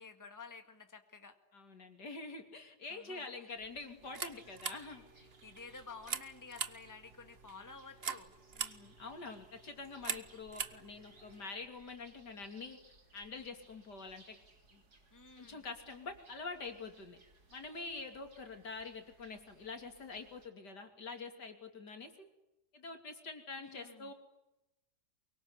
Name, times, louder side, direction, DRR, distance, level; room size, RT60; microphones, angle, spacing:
voice 1, 0.0-1.4 2.9-3.6 5.2-8.3 15.1-15.6 23.6-24.1, left 4 dB, 10° left, 7 dB, 1.9 m, -52 dB
voice 2, 1.5-5.0 8.6-12.8 13.1-14.4 14.7-14.8 15.4-17.2 17.5-22.3 22.7-24.1, left 4 dB, 80° left, 5 dB, 3.5 m, -46 dB
sound 1, 3.6-20.5, right 2 dB, 70° right, 3.9 m, -65 dB
sound 2, 4.0-11.4, right 6 dB, 40° right, 1.3 m, -44 dB
24.0 x 23.0 x 9.7 m, 0.91 s
omnidirectional pair, 1.8 m